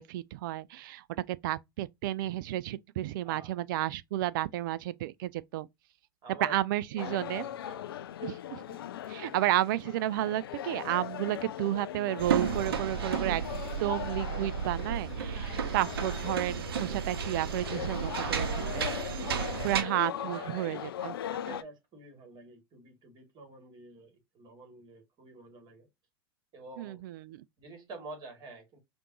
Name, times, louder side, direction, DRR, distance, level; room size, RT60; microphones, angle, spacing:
voice 1, 0.0-5.7 6.4-7.4 8.2-8.8 9.1-13.4 13.8-18.9 19.6-21.1 26.8-27.4, right 14 dB, 55° right, 0.4 m, -32 dB
voice 2, 6.2-6.6 6.9-8.0 15.5-15.8 19.0-19.4 20.1-20.9 21.2-25.9 26.5-27.0 27.6-28.8, right 3 dB, 35° right, 2.4 m, -48 dB
sound 1, 7.0-21.6, left 11 dB, 70° left, 0.4 m, -40 dB
sound 2, 12.2-19.8, right 7 dB, 70° right, 0.8 m, -33 dB
5.0 x 2.5 x 3.0 m
hypercardioid pair, 95°, 13 cm